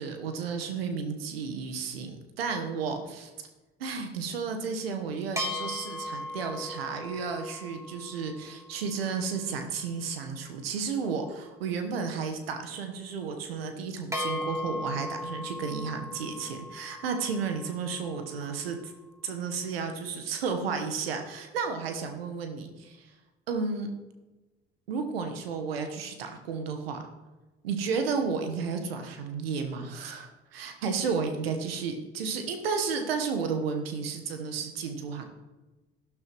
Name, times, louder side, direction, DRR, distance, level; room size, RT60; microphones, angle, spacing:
voice 1, 0.0-3.3 3.8-18.9 19.2-23.1 23.5-23.9 24.9-27.0 27.6-35.2, right 5 dB, 90° right, 6 dB, 1.2 m, -32 dB
sound 1, 5.4-9.0 14.1-18.5, left 1 dB, 10° right, 3.0 m, -37 dB
12.0 x 11.5 x 3.1 m, 1.1 s
hypercardioid pair, 55°, 29 cm